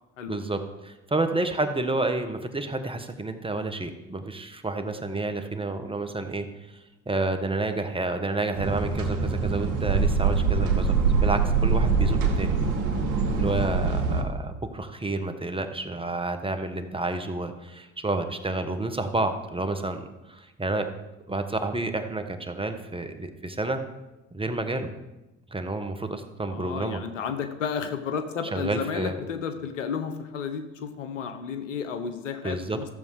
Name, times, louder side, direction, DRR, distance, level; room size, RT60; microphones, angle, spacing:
voice 1, 0.3-6.5 7.0-12.6 13.3-20.9 21.3-23.8 24.3-24.9 25.5-27.0 28.5-29.2 32.4-32.8, right 2 dB, 15° right, 7 dB, 1.5 m, -30 dB
sound 1, 8.5-14.2, right 5 dB, 55° right, 2.2 m, -24 dB
voice 2, 26.5-32.9, left 6 dB, 85° left, 8 dB, 1.1 m, -32 dB
14.5 x 7.1 x 4.9 m, 1.0 s
hypercardioid pair, 65°, 37 cm